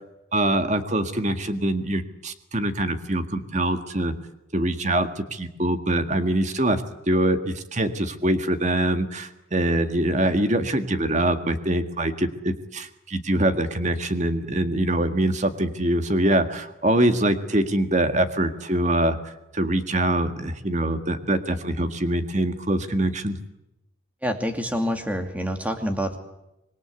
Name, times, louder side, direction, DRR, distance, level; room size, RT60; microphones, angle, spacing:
voice 1, 0.3-4.1 4.5-6.8 7.1-23.4, right 1 dB, 35° right, 8 dB, 1.8 m, -24 dB
voice 2, 24.2-26.2, equal, 5° right, 6 dB, 2.5 m, -27 dB
26.0 x 21.5 x 8.2 m, 0.90 s
head